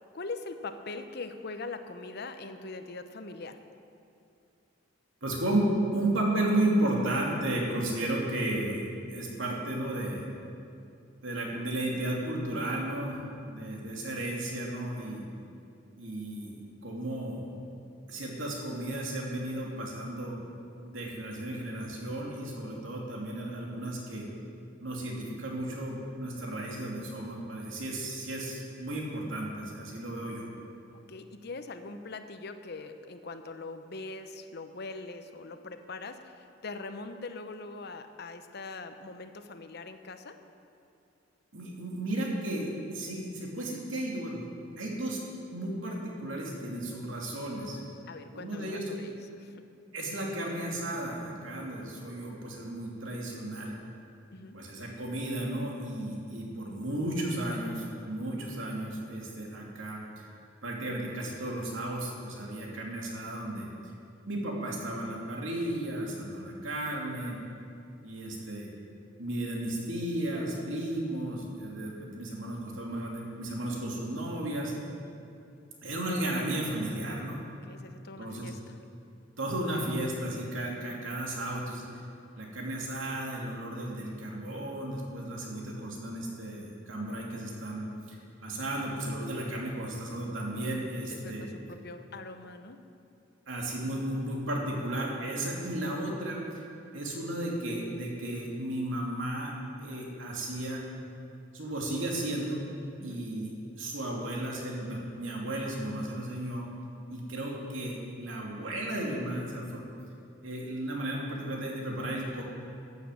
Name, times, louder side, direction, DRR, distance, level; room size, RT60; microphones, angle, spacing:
voice 1, 0.1-3.6 31.1-40.3 48.1-49.1 49.4-49.6 54.3-54.6 77.7-78.8 91.1-92.8 103.0-103.2, left 3 dB, 55° left, 8 dB, 0.8 m, -42 dB
voice 2, 5.2-5.7 5.9-10.2 11.2-15.2 16.0-17.5 18.1-20.4 20.8-24.2 24.8-30.5 41.5-44.4 44.8-45.2 45.5-47.8 48.3-49.2 49.9-53.7 54.5-60.3 60.6-63.7 64.2-67.4 68.0-68.7 69.2-74.7 75.8-77.4 78.2-78.5 79.4-81.8 82.4-91.5 93.5-96.6 96.9-99.5 99.8-100.8 101.5-102.6 103.0-106.7 107.1-109.8 110.4-112.4, right 1 dB, 85° right, -2 dB, 2.7 m, -34 dB
12.5 x 8.5 x 7.7 m, 2.5 s
head